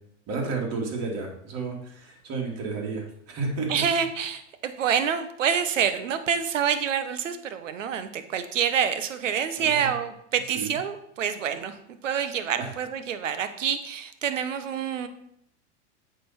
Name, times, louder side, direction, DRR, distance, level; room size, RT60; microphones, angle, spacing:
voice 1, 0.3-3.9 9.6-9.9 10.5-10.7 12.6-12.7, right 4 dB, 45° right, 0 dB, 2.8 m, -32 dB
voice 2, 3.7-15.1, right 8 dB, 85° right, 11 dB, 1.0 m, -27 dB
8.6 x 4.4 x 5.8 m, 0.72 s
hypercardioid pair, 105°, 37 cm